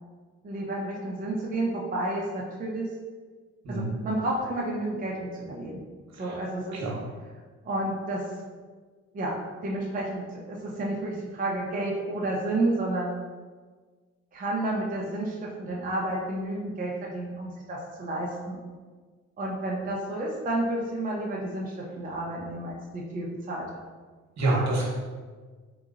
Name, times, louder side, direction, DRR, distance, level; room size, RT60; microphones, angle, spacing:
voice 1, 0.4-2.9 3.7-5.8 6.2-6.8 7.6-8.2 9.1-9.3 9.6-13.1 14.3-18.6 19.4-23.8, right 1 dB, 30° right, -3 dB, 0.6 m, -31 dB
voice 2, 24.4-24.9, right 2 dB, 65° right, -3 dB, 1.1 m, -26 dB
3.7 x 2.9 x 2.5 m, 1.4 s
cardioid pair, 90°, 30 cm